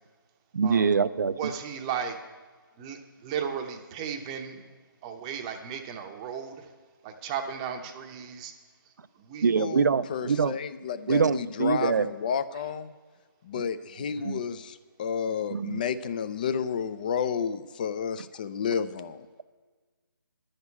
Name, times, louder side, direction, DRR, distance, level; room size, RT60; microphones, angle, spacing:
voice 1, 0.5-1.4 9.4-10.6 11.1-12.1 14.2-14.4 15.5-15.8, right 5 dB, 55° right, 14 dB, 0.5 m, -24 dB
voice 2, 1.3-2.2 2.8-4.7 5.0-6.7 7.0-8.5 9.2-9.5 14.2-14.3, right 7 dB, 15° right, 5 dB, 0.8 m, -35 dB
voice 3, 9.6-12.9 13.4-19.3, left 7 dB, 20° left, 13 dB, 0.4 m, -31 dB
11.5 x 6.5 x 8.4 m, 1.4 s
figure-of-eight pair, 155°, 12 cm